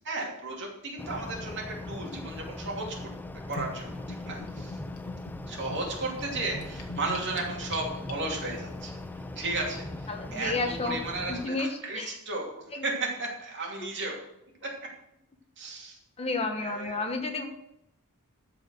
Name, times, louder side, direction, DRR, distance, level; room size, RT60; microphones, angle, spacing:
voice 1, 0.0-3.1 3.5-4.8 5.5-8.9 9.4-14.2 14.6-14.7 15.6-16.0 16.5-17.1, right 2 dB, 55° right, -1 dB, 2.7 m, -34 dB
sound 1, 1.0-11.5, left 2 dB, 10° left, 0.4 m, -40 dB
Gurgling / Bathtub (filling or washing), 3.5-8.6, left 1 dB, 85° left, 1.6 m, -43 dB
voice 2, 10.1-11.0 11.3-12.2 12.7-12.8 16.2-17.5, left 3 dB, 25° left, 4 dB, 1.0 m, -31 dB
13.0 x 4.8 x 6.1 m, 0.80 s
head